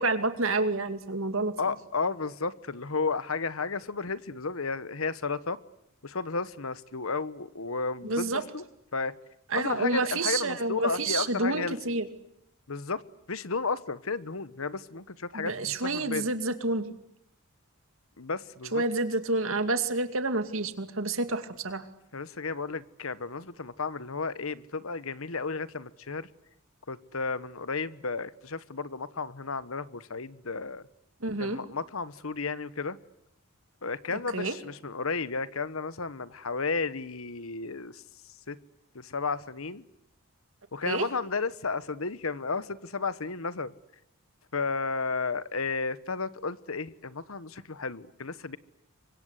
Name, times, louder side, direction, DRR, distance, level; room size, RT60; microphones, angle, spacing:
voice 1, 0.0-1.5 8.0-8.4 9.5-12.1 15.3-16.9 18.7-21.8 31.2-31.6 34.3-34.6 40.8-41.1, right 2 dB, 65° right, 9 dB, 2.4 m, -29 dB
voice 2, 1.6-5.6 6.0-8.6 8.9-9.1 9.5-11.8 12.7-13.0 13.3-16.3 18.2-18.8 22.1-26.3 26.9-30.9 31.4-33.0 33.8-38.0 38.5-38.6 38.9-39.9 40.7-43.7 44.5-48.6, left 4 dB, 75° left, 15 dB, 1.2 m, -33 dB
28.5 x 24.5 x 8.3 m, 0.80 s
head